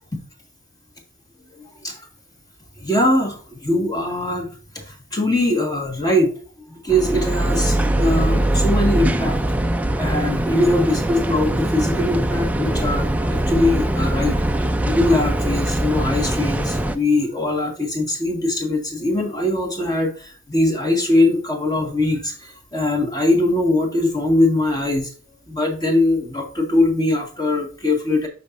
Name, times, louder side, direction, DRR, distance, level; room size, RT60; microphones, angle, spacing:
voice 1, 2.8-4.5 4.7-6.3 6.7-9.4 10.0-14.4 14.8-25.1 25.5-28.3, left 1 dB, 20° left, 2 dB, 1.6 m, -21 dB
sound 1, 6.9-17.0, right 1 dB, 10° right, 0.4 m, -21 dB
11.5 x 4.1 x 2.5 m, 0.41 s
head